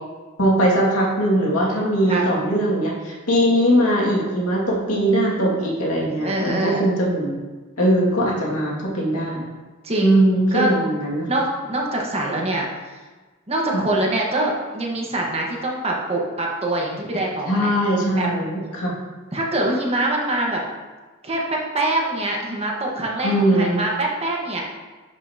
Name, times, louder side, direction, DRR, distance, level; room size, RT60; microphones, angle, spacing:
voice 1, 0.4-7.4 7.8-9.5 10.0-11.3 13.7-13.8 17.5-19.0 23.2-23.8, right 1 dB, 85° left, -4 dB, 2.1 m, -20 dB
voice 2, 6.2-6.9 9.8-10.2 10.5-10.7 11.3-12.7 13.5-17.7 18.2-18.3 19.3-20.6 21.2-24.6, right 1 dB, 30° right, -2 dB, 1.3 m, -24 dB
11.0 x 5.4 x 2.8 m, 1.3 s
head